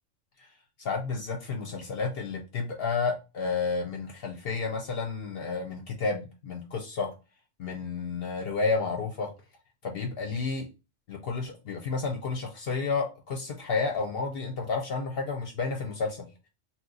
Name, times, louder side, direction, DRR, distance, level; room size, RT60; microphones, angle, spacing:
voice 1, 0.8-7.1 7.6-9.3 9.8-10.7 11.1-16.3, left 4 dB, 60° left, 2 dB, 0.8 m, -31 dB
2.8 x 2.2 x 3.8 m, 0.29 s
omnidirectional pair, 1.3 m